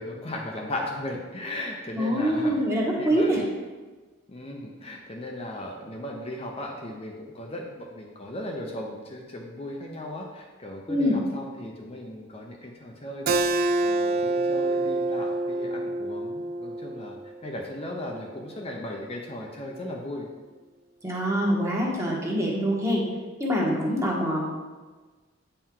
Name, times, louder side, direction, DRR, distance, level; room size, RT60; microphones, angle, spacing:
voice 1, 0.0-2.5 3.0-3.3 4.3-20.3 23.8-24.0, left 1 dB, 30° left, 0 dB, 0.6 m, -37 dB
voice 2, 2.0-3.4 10.9-11.2 21.0-23.0 23.4-24.5, equal, 15° right, -3 dB, 1.3 m, -24 dB
Keyboard (musical), 13.3-18.4, right 2 dB, 45° right, 0.3 m, -27 dB
8.8 x 4.5 x 3.7 m, 1.3 s
head